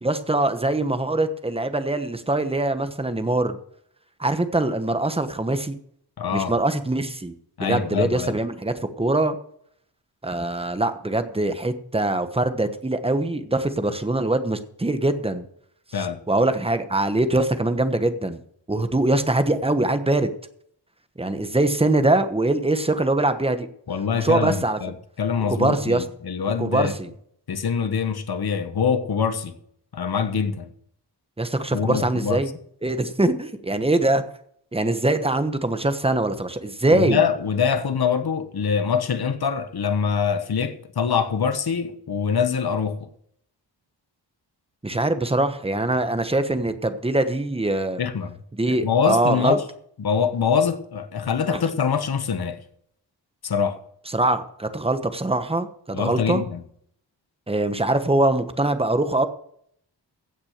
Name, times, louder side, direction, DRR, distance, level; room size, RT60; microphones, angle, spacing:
voice 1, 0.0-3.6 4.2-5.8 6.3-7.3 7.6-9.3 10.2-15.4 16.3-18.4 18.7-20.3 21.2-23.7 24.1-24.8 25.5-26.0 26.6-27.1 31.4-32.5 32.8-34.2 34.7-37.2 44.8-48.0 48.6-49.6 54.1-56.4 57.5-59.3, right 2 dB, 15° right, 1.1 m, -23 dB
voice 2, 6.2-6.5 7.6-8.4 15.9-16.2 23.9-26.9 27.5-29.5 29.9-30.7 31.7-32.4 36.9-43.1 48.0-48.4 48.7-49.6 50.0-52.6 53.4-53.8 55.9-56.6, left 6 dB, 60° left, 1.3 m, -24 dB
16.0 x 6.1 x 6.6 m
wide cardioid pair, 100°, 43 cm